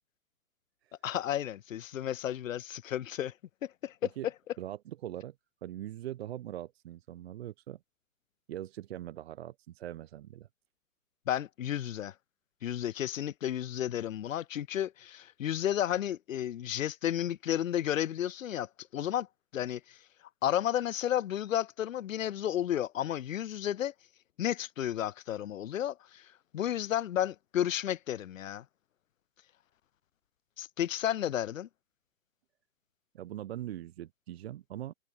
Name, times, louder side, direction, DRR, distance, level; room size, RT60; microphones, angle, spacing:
voice 1, 1.0-3.3 3.6-3.9 11.3-12.1 12.6-19.3 19.5-20.0 20.4-23.9 24.4-26.3 26.5-28.6 30.6-31.7, left 11 dB, 70° left, 0.6 m, -32 dB
voice 2, 4.6-5.4 5.6-7.8 8.5-10.5 33.1-34.9, right 13 dB, 50° right, 1.2 m, -41 dB
figure-of-eight pair, 120°, 41 cm